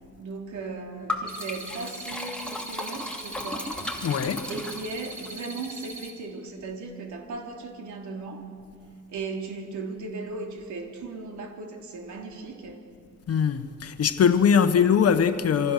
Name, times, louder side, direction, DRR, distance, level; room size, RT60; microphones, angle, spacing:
voice 1, 0.2-3.8 4.5-8.5 9.1-12.9, right 3 dB, 75° right, 3.7 m, -37 dB
Liquid, 1.1-5.3, left 2 dB, 5° left, 2.8 m, -35 dB
sound 1, 1.3-6.1, right 2 dB, 30° right, 4.1 m, -41 dB
voice 2, 4.0-4.5 13.3-15.7, left 7 dB, 55° left, 1.3 m, -21 dB
26.5 x 26.0 x 6.7 m
cardioid pair, 125°, 30 cm